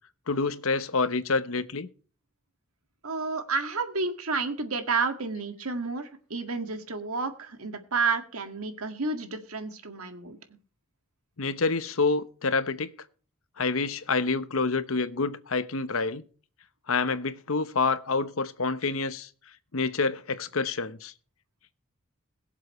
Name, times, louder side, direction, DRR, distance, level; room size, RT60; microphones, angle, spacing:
voice 1, 0.3-1.9 11.4-12.9 13.6-16.2 16.9-19.3 19.7-21.1, left 4 dB, 70° left, 1.0 m, -27 dB
voice 2, 3.0-10.4, right 4 dB, 90° right, 1.9 m, -30 dB
22.0 x 7.4 x 3.1 m
head